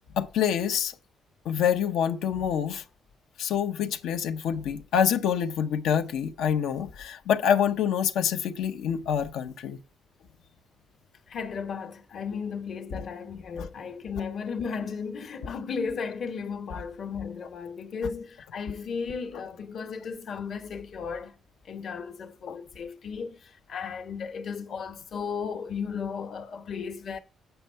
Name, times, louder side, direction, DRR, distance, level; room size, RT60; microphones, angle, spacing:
voice 1, 0.1-1.0 1.4-2.8 3.4-9.8 13.6-13.7 15.4-15.5 22.5-22.6, left 8 dB, 85° left, 0.6 m, -26 dB
voice 2, 11.3-21.3 21.6-27.2, left 6 dB, 60° left, 1.0 m, -35 dB
7.9 x 5.4 x 4.4 m
cardioid pair, 90°, 0 cm